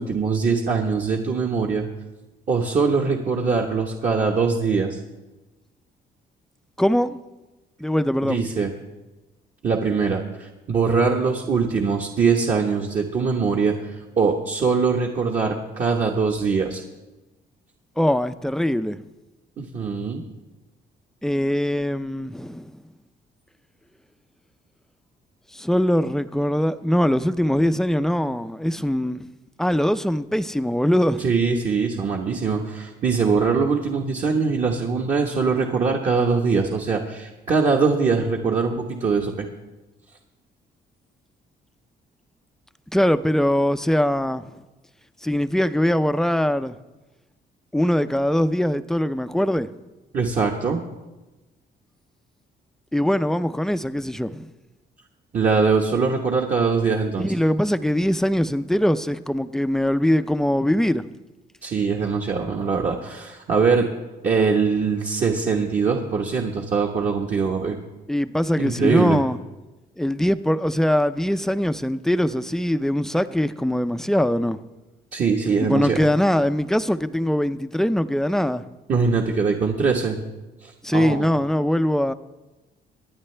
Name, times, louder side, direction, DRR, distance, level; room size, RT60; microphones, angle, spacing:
voice 1, 0.0-1.8 2.5-5.0 8.2-8.7 9.6-16.8 19.6-20.2 31.2-39.5 50.1-50.8 55.3-57.3 61.6-63.9 64.2-67.8 68.6-69.2 75.1-76.0 78.9-80.2 80.6-81.3, right 5 dB, 45° right, 1.3 m, -22 dB
voice 2, 6.8-7.2 7.8-8.4 18.0-19.0 21.2-22.8 25.5-29.3 29.6-31.3 42.9-44.5 45.2-46.8 47.7-49.7 52.9-54.5 57.2-61.0 68.1-69.4 70.0-74.6 75.6-78.6 80.8-82.1, equal, 5° left, 0.5 m, -22 dB
24.5 x 9.6 x 3.3 m
cardioid pair, 120°, 17 cm